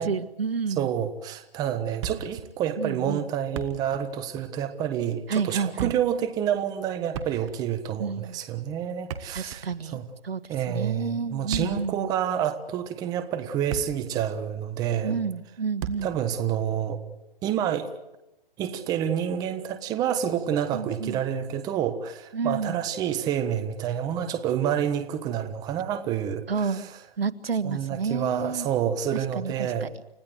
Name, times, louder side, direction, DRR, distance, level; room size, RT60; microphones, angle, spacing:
voice 1, 0.0-0.9 2.8-3.2 5.3-5.9 8.0-8.4 9.3-10.0 10.2-12.1 15.0-16.1 20.7-21.2 22.3-22.8 26.5-28.7 29.3-29.9, right 5 dB, 80° right, 12 dB, 1.8 m, -30 dB
voice 2, 0.7-10.0 10.5-15.2 16.0-17.0 17.4-17.9 18.6-26.9 27.6-29.9, right 9 dB, 15° right, 10 dB, 1.3 m, -28 dB
Thump thud, 2.0-2.5 2.8-2.9 3.4-4.1 4.4-4.5 5.5-6.2 7.1-7.7 8.9-9.9 11.3-12.0 12.7-12.8 13.4-14.2 14.4-14.6 15.8-16.2, right 9 dB, 30° right, 1.7 m, -36 dB
30.0 x 16.0 x 8.0 m, 0.94 s
hypercardioid pair, 155°, 29 cm